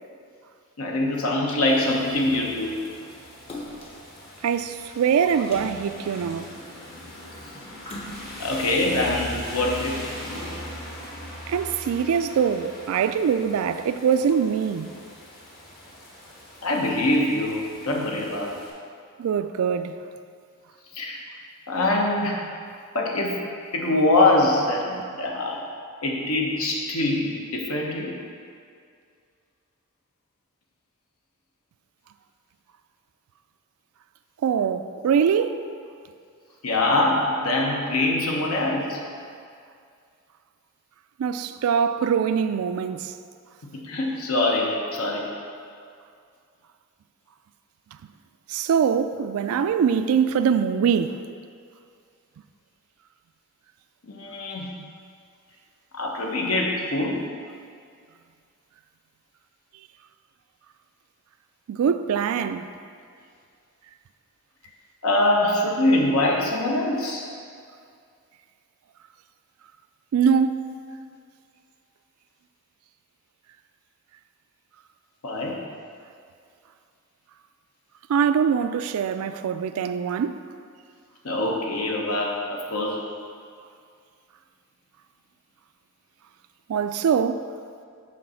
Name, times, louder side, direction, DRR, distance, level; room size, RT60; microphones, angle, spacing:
voice 1, 0.8-2.7 8.4-10.0 16.6-18.5 20.9-21.2 21.7-22.4 22.9-23.4 23.7-25.6 26.0-28.1 36.6-39.0 43.6-45.2 54.0-54.7 55.9-57.3 65.0-67.3 75.2-75.6 81.2-83.0, left 2 dB, 75° left, 1.0 m, -24 dB
Rain, 1.6-18.7, left 1 dB, 45° left, 1.3 m, -41 dB
Splash splatter, 3.5-4.1 5.4-6.7 7.8-8.6 9.2-9.3, left 1 dB, 25° left, 0.7 m, -40 dB
voice 2, 4.4-6.5 11.5-14.9 19.2-20.0 34.4-35.6 41.2-43.1 48.5-51.2 61.7-62.7 70.1-70.6 78.1-80.4 86.7-87.5, right 7 dB, 70° right, 0.3 m, -23 dB
6.4 x 3.9 x 5.6 m
head